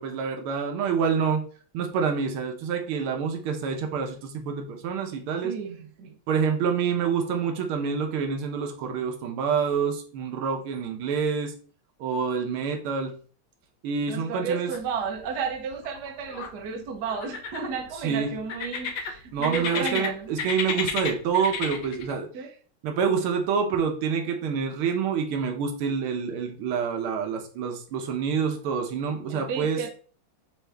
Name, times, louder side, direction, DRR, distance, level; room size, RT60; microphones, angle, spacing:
voice 1, 0.0-1.4 1.7-5.5 6.3-11.5 12.0-13.2 13.8-14.7 18.0-18.3 19.3-22.5 22.8-29.8, right 6 dB, 85° right, 3 dB, 1.7 m, -27 dB
voice 2, 5.4-6.2 14.1-20.3 22.3-22.5 29.3-29.9, right 6 dB, 60° right, 3 dB, 1.3 m, -33 dB
sound 1, 14.7-15.3 15.5-16.5 17.1-17.9 18.5-20.1 20.4-22.1, left 6 dB, 65° left, 1.2 m, -32 dB
6.0 x 2.7 x 3.3 m, 0.41 s
omnidirectional pair, 2.3 m